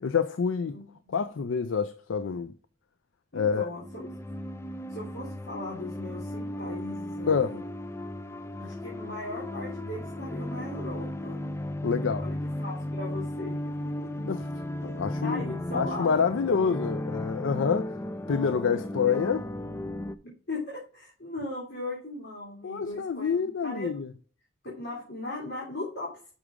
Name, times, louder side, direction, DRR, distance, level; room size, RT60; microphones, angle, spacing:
voice 1, 0.0-0.8 1.1-2.5 3.3-3.7 7.3-7.6 11.8-12.2 14.2-14.4 14.8-17.9 18.3-19.4 22.6-24.1, left 6 dB, 75° left, 0.5 m, -27 dB
voice 2, 0.7-1.2 3.3-4.1 4.9-7.6 8.6-11.4 12.2-14.1 15.2-16.3 19.0-19.2 20.2-24.1 24.6-26.3, left 2 dB, 60° left, 2.7 m, -38 dB
sound 1, 3.8-20.2, left 1 dB, 15° left, 0.4 m, -35 dB
6.2 x 4.8 x 5.1 m
head